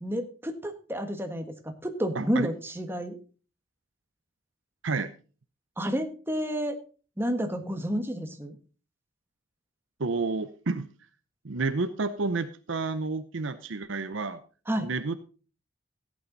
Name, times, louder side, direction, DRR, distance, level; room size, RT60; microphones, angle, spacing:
voice 1, 0.0-1.5 1.8-3.2 5.8-6.8 7.2-8.5 14.7-14.9, equal, 10° right, 6 dB, 1.4 m, -30 dB
voice 2, 2.1-2.5 4.8-5.1 10.0-10.9 11.4-14.4 14.8-15.2, right 3 dB, 75° right, 11 dB, 0.8 m, -30 dB
15.5 x 8.7 x 4.0 m, 0.37 s
head